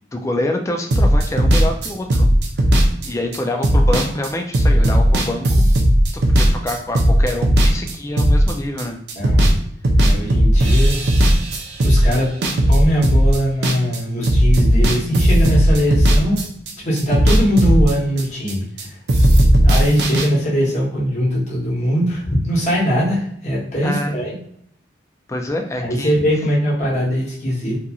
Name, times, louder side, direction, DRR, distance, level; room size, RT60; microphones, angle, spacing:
voice 1, 0.1-2.3 3.0-5.8 6.1-9.0 23.8-24.2 25.3-26.1, left 1 dB, 15° left, 4 dB, 0.3 m, -26 dB
sound 1, 0.9-8.8 9.1-9.6 9.8-14.0 14.2-18.8 19.1-20.3, equal, 65° right, 0.5 m, -15 dB
voice 2, 9.1-9.6 10.0-11.0 11.8-12.3 12.7-16.4 16.8-19.0 19.6-24.4 25.8-27.8, equal, 40° left, -5 dB, 1.0 m, -21 dB
2.9 x 2.5 x 2.3 m, 0.66 s
head